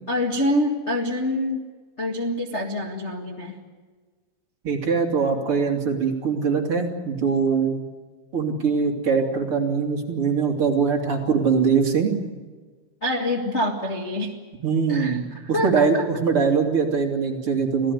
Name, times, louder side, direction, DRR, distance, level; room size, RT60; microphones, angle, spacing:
voice 1, 0.1-1.6 2.0-3.6 13.0-14.3 14.9-15.2 15.5-16.0, left 1 dB, 30° left, 0 dB, 1.2 m, -25 dB
voice 2, 4.6-7.8 8.3-12.1 14.6-17.9, right 5 dB, 40° right, 1 dB, 3.1 m, -22 dB
26.5 x 17.0 x 9.4 m, 1.4 s
omnidirectional pair, 4.5 m